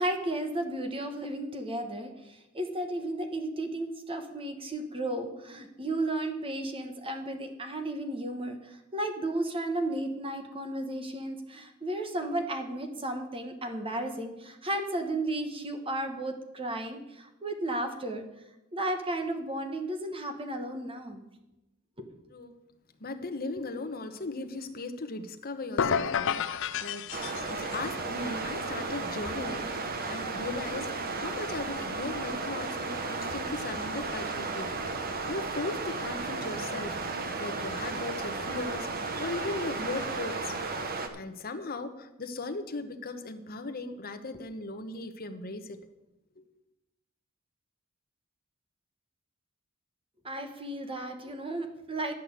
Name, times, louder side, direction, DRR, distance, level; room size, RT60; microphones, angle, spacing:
voice 1, 0.0-18.2 18.7-21.2 22.0-22.1 50.2-52.1, right 1 dB, 25° right, 6 dB, 1.2 m, -34 dB
voice 2, 23.0-27.1 27.5-34.7 35.3-38.9 39.2-40.5 41.1-45.8, left 3 dB, 45° left, 8 dB, 1.0 m, -38 dB
sound 1, 25.8-27.9, left 7 dB, 65° left, 0.5 m, -30 dB
sound 2, 27.1-41.1, right 3 dB, 45° right, 1.1 m, -34 dB
11.0 x 6.0 x 8.1 m, 0.92 s
head